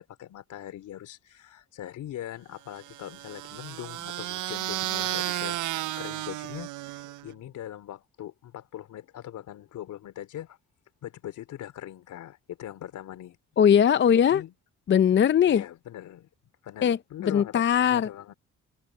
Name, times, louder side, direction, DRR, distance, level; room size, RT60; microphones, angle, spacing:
voice 1, 0.0-10.6 11.0-13.4 14.1-14.5 15.5-16.3 16.6-18.3, left 12 dB, 80° left, 3.9 m, -41 dB
sound 1, 2.8-7.3, right 17 dB, 85° right, 0.6 m, -33 dB
voice 2, 13.6-14.4 14.9-15.6 16.8-18.1, left 8 dB, 40° left, 0.5 m, -20 dB
cardioid pair, 90°, 30 cm